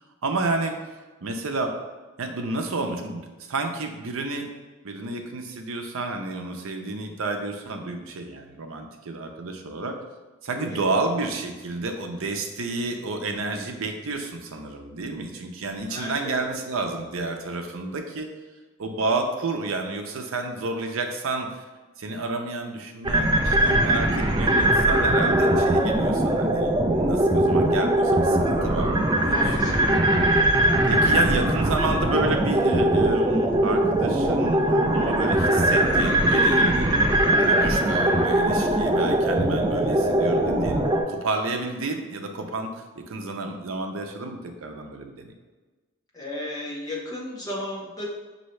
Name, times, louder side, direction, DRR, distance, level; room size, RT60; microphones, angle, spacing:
voice 1, 0.2-0.8 1.2-1.7 2.2-4.5 4.8-10.0 10.4-18.3 18.8-21.6 22.0-28.9 29.2-29.6 29.8-30.0 30.8-36.9 37.4-40.8 41.1-45.3, right 3 dB, 80° right, 4 dB, 0.6 m, -30 dB
voice 2, 15.9-16.4 29.3-29.8 36.0-36.5 46.1-48.1, left 1 dB, 15° left, -5 dB, 0.8 m, -34 dB
sound 1, 23.0-41.0, right 1 dB, 20° right, 0.3 m, -21 dB
5.3 x 2.7 x 3.1 m, 1.3 s
head